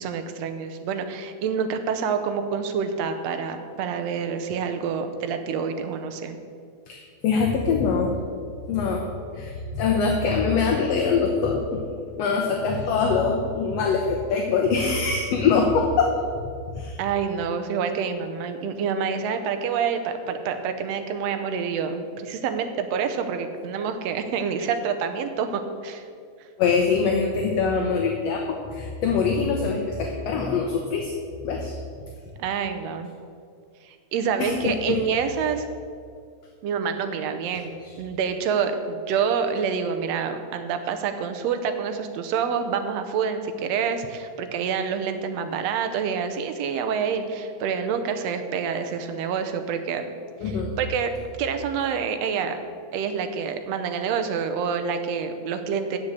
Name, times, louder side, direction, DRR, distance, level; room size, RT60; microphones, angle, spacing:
voice 1, 0.0-6.4 17.0-26.0 32.4-33.1 33.8-35.7 36.6-50.1 50.4-51.1 51.4-52.6 52.9-56.0, right 6 dB, 75° right, 7 dB, 1.8 m, -27 dB
voice 2, 6.9-8.1 8.7-9.1 9.3-11.6 12.2-17.0 26.6-31.1 31.4-31.8 34.4-35.0 37.8-37.9 50.4-50.7, left 5 dB, 70° left, 2 dB, 1.8 m, -23 dB
7.5 x 7.4 x 8.1 m, 2.2 s
omnidirectional pair, 3.4 m